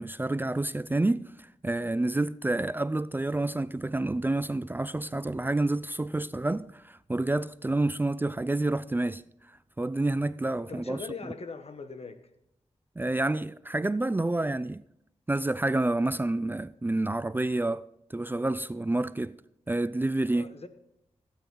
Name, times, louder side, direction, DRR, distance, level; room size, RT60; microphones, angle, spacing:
voice 1, 0.0-9.2 9.8-11.0 13.0-14.8 15.3-19.4 19.7-20.5, right 2 dB, 15° right, 0.4 m, -29 dB
voice 2, 10.7-12.2 20.3-20.7, left 4 dB, 60° left, 1.3 m, -40 dB
17.0 x 9.0 x 3.9 m
wide cardioid pair, 70°, 12 cm